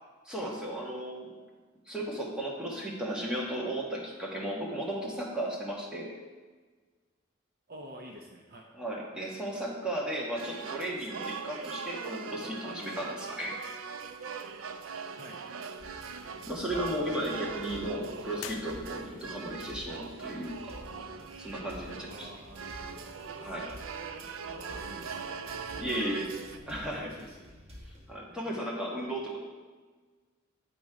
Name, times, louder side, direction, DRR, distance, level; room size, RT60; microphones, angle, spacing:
voice 1, 0.2-1.3 1.9-6.1 8.7-13.5 16.1-20.5 21.4-22.3 23.4-23.7 25.8-26.3 26.7-27.1 28.1-29.4, right 1 dB, 5° right, -4 dB, 1.4 m, -35 dB
voice 2, 7.7-8.7 15.1-15.4 22.1-23.0 24.5-26.6 26.9-27.5 28.3-28.5, equal, 50° right, 1 dB, 0.9 m, -49 dB
sound 1, 10.4-26.6, right 5 dB, 75° right, 0.5 m, -41 dB
sound 2, 15.8-28.1, equal, 30° right, 1.2 m, -50 dB
sound 3, 18.3-19.4, left 10 dB, 75° left, 0.4 m, -45 dB
9.6 x 4.1 x 4.9 m, 1.4 s
head